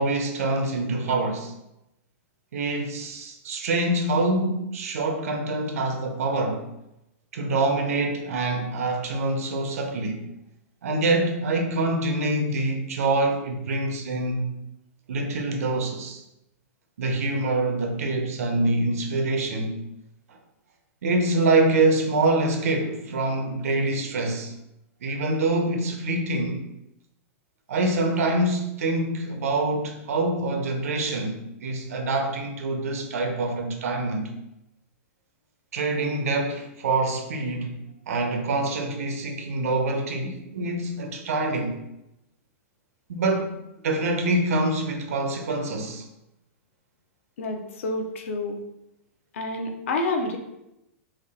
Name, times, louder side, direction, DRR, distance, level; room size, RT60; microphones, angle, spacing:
voice 1, 0.0-1.5 2.5-6.7 7.3-10.2 10.8-14.5 15.1-16.2 17.0-19.7 20.3-20.4 21.0-24.5 25.0-26.6 27.7-34.3 35.7-37.8 38.1-41.7 43.1-43.5 43.8-46.0, right 2 dB, 85° right, 0.7 m, -25 dB
voice 2, 47.4-48.6 49.3-50.4, left 2 dB, 60° left, 0.5 m, -28 dB
3.6 x 2.4 x 3.5 m
supercardioid pair, 180°, 8 cm